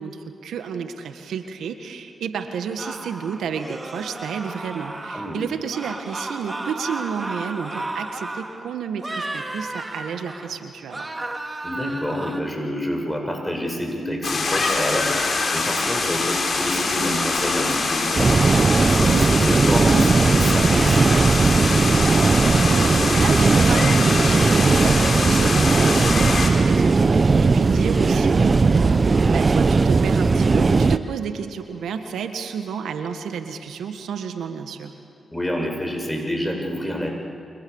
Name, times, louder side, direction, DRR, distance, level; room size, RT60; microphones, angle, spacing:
voice 1, 0.0-11.1 22.4-34.9, right 6 dB, 80° right, 7 dB, 1.6 m, -31 dB
sound 1, 2.8-5.4 5.7-8.6 9.0-10.6 10.9-12.4, right 2 dB, 25° right, 2.9 m, -33 dB
voice 2, 11.6-18.6 19.0-21.1 27.5-27.6 35.3-37.1, equal, 10° left, 2 dB, 7.6 m, -28 dB
sound 2, 14.2-26.5, left 3 dB, 55° left, 5.0 m, -24 dB
sound 3, 18.1-31.0, right 4 dB, 50° right, 0.8 m, -18 dB
28.5 x 25.5 x 7.2 m, 2.3 s
supercardioid pair, 40°, 0 cm